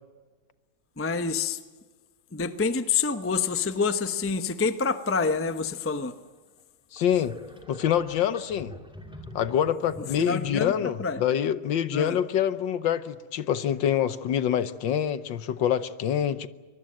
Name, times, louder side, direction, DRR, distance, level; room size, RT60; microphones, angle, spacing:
voice 1, 1.0-1.6 2.3-6.1 10.2-11.2 11.9-12.2, left 5 dB, 15° left, 10 dB, 0.4 m, -27 dB
sound 1, 6.3-6.4 7.0-11.2, left 1 dB, ahead, 2.4 m, -45 dB
voice 2, 6.9-7.3 7.7-8.7 9.3-16.5, left 9 dB, 70° left, 13 dB, 1.6 m, -26 dB
23.5 x 23.0 x 7.7 m, 1.4 s
omnidirectional pair, 2.2 m